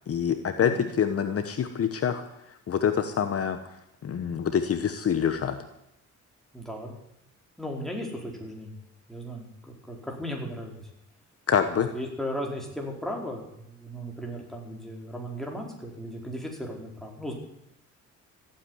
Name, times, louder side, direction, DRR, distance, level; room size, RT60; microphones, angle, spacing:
voice 1, 0.1-3.6 4.0-5.6 11.5-11.9, left 8 dB, 50° left, 8 dB, 1.2 m, -26 dB
voice 2, 6.5-7.0 7.6-8.8 9.1-10.8 11.9-17.3, equal, ahead, 0 dB, 4.7 m, -36 dB
15.0 x 8.8 x 9.7 m, 0.82 s
cardioid pair, 90°, 30 cm